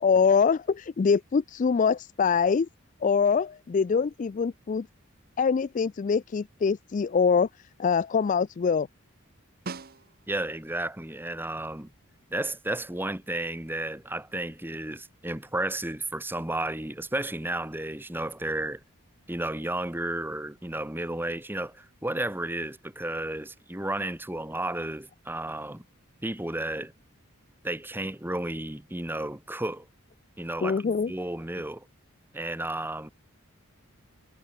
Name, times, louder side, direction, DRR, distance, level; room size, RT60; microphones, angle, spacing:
voice 1, 0.0-2.7 3.0-4.9 5.4-7.5 7.8-8.9 30.6-31.1, left 5 dB, 35° left, 0.3 m, -24 dB
Snare drum, 9.7-10.6 15.0-15.1, right 3 dB, 45° right, 1.1 m, -40 dB
voice 2, 10.3-11.9 12.3-18.8 19.3-25.8 26.2-26.9 27.6-29.9 30.4-31.9 32.3-33.1, right 1 dB, 10° right, 1.2 m, -32 dB
head